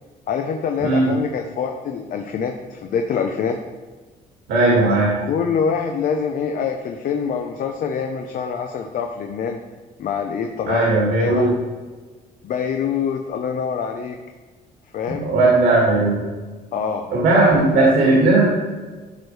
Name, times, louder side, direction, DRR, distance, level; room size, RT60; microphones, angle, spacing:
voice 1, 0.3-3.6 5.2-9.6 10.0-10.9 11.2-11.5 12.4-14.2 14.9-15.3 16.7-17.1 17.4-18.0, left 6 dB, 55° left, 4 dB, 0.7 m, -25 dB
voice 2, 0.8-1.1 4.5-5.1 10.7-11.5 15.1-16.2 17.1-18.4, right 2 dB, 80° right, -4 dB, 2.2 m, -17 dB
12.5 x 4.6 x 3.3 m, 1.3 s
cardioid pair, 110°, 17 cm